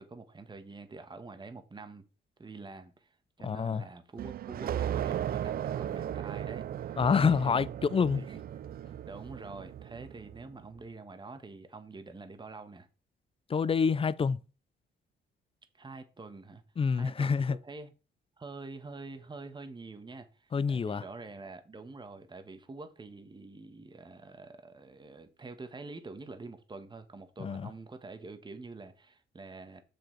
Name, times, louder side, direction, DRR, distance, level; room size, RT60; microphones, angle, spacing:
voice 1, 0.0-2.0 2.4-6.6 7.2-7.6 8.1-8.4 9.0-12.9 15.7-16.6 16.9-17.9 18.4-29.8, right 3 dB, 25° right, 1.4 m, -46 dB
voice 2, 3.4-3.8 7.0-8.2 13.5-14.4 16.8-17.6 20.5-21.0 27.4-27.7, left 5 dB, 30° left, 0.5 m, -27 dB
sound 1, 4.2-10.5, right 10 dB, 50° right, 0.4 m, -36 dB
6.6 x 6.5 x 4.6 m
cardioid pair, 90°, 20 cm